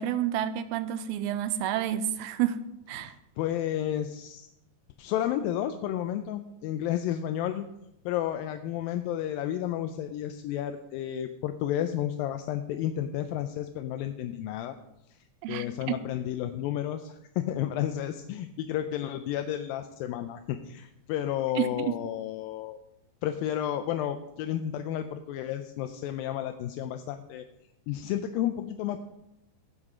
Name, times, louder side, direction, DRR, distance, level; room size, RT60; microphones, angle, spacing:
voice 1, 0.0-2.6 2.9-3.1 15.4-16.0 21.6-21.9, right 11 dB, 85° right, 12 dB, 2.4 m, -29 dB
voice 2, 3.0-4.5 5.0-7.7 8.1-14.8 15.1-15.2 15.5-22.8 23.2-27.4 27.9-29.0, left 11 dB, 80° left, 8 dB, 2.3 m, -32 dB
16.5 x 8.3 x 3.7 m, 0.85 s
omnidirectional pair, 4.3 m